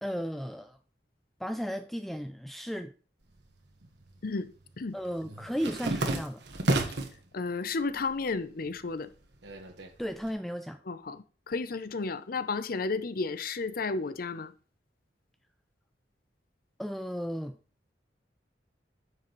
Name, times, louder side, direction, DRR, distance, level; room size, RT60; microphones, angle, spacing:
voice 1, 0.0-0.8 1.4-2.9 4.9-6.4 10.0-10.8 16.8-17.6, equal, ahead, 0.3 m, -34 dB
sound 1, 3.3-4.1 4.4-7.2 7.7-8.3 8.6-10.3, right 2 dB, 75° right, 1.4 m, -32 dB
voice 2, 4.2-5.0 7.3-9.1 10.9-14.5, left 4 dB, 55° left, 0.6 m, -33 dB
9.4 x 7.6 x 3.1 m
head